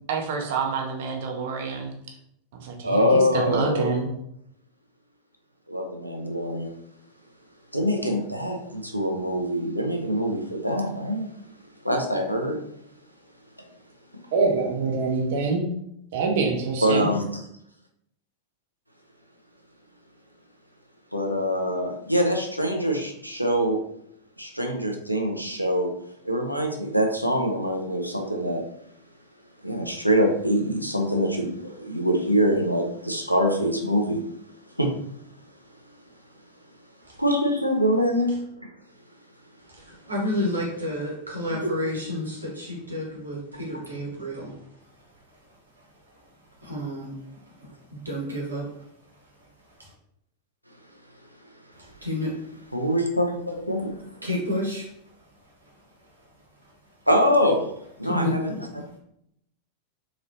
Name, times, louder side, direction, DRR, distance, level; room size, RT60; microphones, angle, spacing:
voice 1, 0.1-1.9 2.5-4.1 14.3-15.7 16.1-17.1, right 4 dB, 55° right, 2 dB, 0.6 m, -26 dB
voice 2, 2.8-4.0 5.7-6.7 7.7-11.3 11.8-12.6 16.8-17.4 21.1-23.8 24.4-25.9 26.2-28.6 29.6-34.2 34.8-34.9 37.2-38.4 41.5-42.2 43.5-43.8 52.7-53.9 54.2-54.3 57.1-57.7 58.0-58.7, equal, 90° left, 2 dB, 0.6 m, -24 dB
voice 3, 40.1-44.5 46.6-47.1 47.9-48.7 52.0-52.3 54.2-54.8 58.1-58.6, left 1 dB, 80° right, -2 dB, 1.1 m, -29 dB
4.0 x 2.9 x 2.6 m, 0.75 s
figure-of-eight pair, 90°, 0 cm